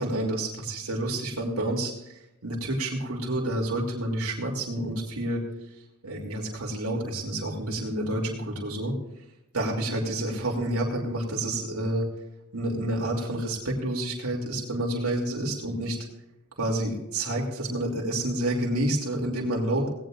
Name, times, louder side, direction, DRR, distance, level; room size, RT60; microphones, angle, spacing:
voice 1, 0.0-5.4 6.0-8.9 9.5-12.1 12.5-16.0 16.6-19.9, right 1 dB, 85° right, -1 dB, 2.9 m, -29 dB
18.0 x 18.0 x 2.5 m, 0.90 s
head